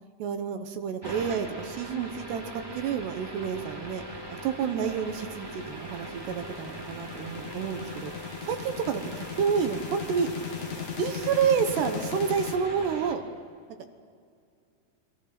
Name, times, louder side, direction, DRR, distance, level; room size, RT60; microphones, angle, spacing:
voice 1, 0.2-4.0 4.3-10.3 10.7-13.2, right 7 dB, 70° right, 7 dB, 2.9 m, -29 dB
sound 1, 1.0-13.1, equal, 15° right, 1.0 m, -41 dB
sound 2, 4.5-12.6, left 9 dB, 65° left, 3.4 m, -39 dB
29.5 x 22.0 x 6.0 m, 2.2 s
omnidirectional pair, 5.5 m